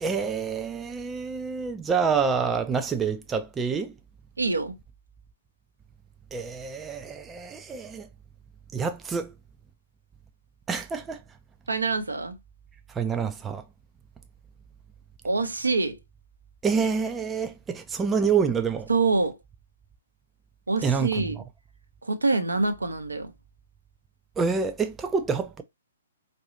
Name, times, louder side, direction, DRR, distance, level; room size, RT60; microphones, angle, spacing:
voice 1, 0.0-4.0 6.3-8.1 8.7-9.3 10.7-11.2 12.9-13.6 16.6-18.9 20.8-21.3 24.4-25.6, right 5 dB, 10° right, 0.4 m, -27 dB
voice 2, 4.4-4.7 11.7-12.3 15.2-16.0 18.9-19.4 20.7-21.4 22.0-23.3, right 3 dB, 75° right, 0.8 m, -25 dB
4.7 x 2.6 x 2.8 m
figure-of-eight pair, 120°, 0 cm